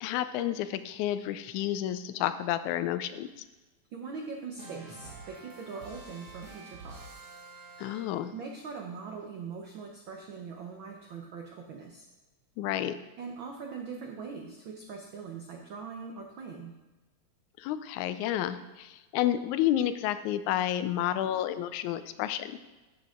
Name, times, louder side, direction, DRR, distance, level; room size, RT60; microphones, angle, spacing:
voice 1, 0.0-3.3 7.8-8.3 12.6-13.0 17.6-22.5, left 12 dB, 85° left, 12 dB, 2.0 m, -30 dB
voice 2, 3.9-7.2 8.3-12.1 13.2-16.7, right 5 dB, 80° right, 2 dB, 1.1 m, -42 dB
sound 1, 4.6-8.5, right 4 dB, 50° right, 2.3 m, -47 dB
11.0 x 7.8 x 3.7 m, 1.1 s
omnidirectional pair, 3.4 m